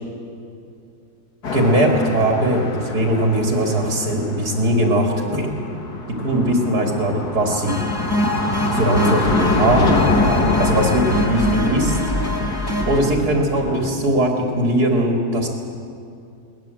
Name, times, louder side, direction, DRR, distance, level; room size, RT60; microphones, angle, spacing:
sound 1, 1.4-13.9, left 3 dB, 75° left, 2.4 m, -25 dB
voice 1, 1.5-5.6 6.1-7.8 8.7-10.0 10.6-12.0 12.9-15.5, right 1 dB, 75° right, 0 dB, 3.0 m, -20 dB
sound 2, 7.7-13.0, equal, 15° left, 3.9 m, -23 dB
22.0 x 19.5 x 7.8 m, 2.5 s
omnidirectional pair, 1.7 m